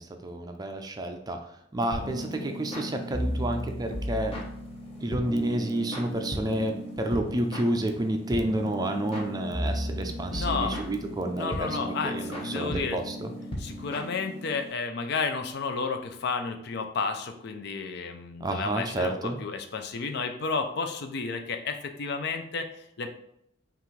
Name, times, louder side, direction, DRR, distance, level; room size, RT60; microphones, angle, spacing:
voice 1, 0.0-4.3 5.0-13.3 18.4-19.4, right 1 dB, 20° right, 5 dB, 0.4 m, -30 dB
sound 1, 1.9-14.7, equal, 30° left, 0.9 m, -35 dB
voice 2, 10.0-10.7 11.4-13.0 13.6-23.1, left 4 dB, 60° left, 6 dB, 0.5 m, -32 dB
5.7 x 2.5 x 3.2 m, 0.75 s
head